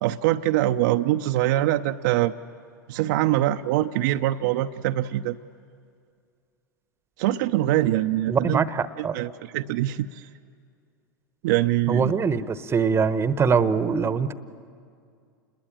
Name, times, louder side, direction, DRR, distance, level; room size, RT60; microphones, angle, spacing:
voice 1, 0.0-2.3 2.9-5.4 7.2-8.6 9.0-10.1 11.4-12.1, right 14 dB, 55° right, 6 dB, 0.7 m, -23 dB
voice 2, 8.3-9.2 11.9-14.3, right 5 dB, 20° right, 14 dB, 1.0 m, -23 dB
28.5 x 21.0 x 8.9 m, 2.3 s
hypercardioid pair, 90°, 11 cm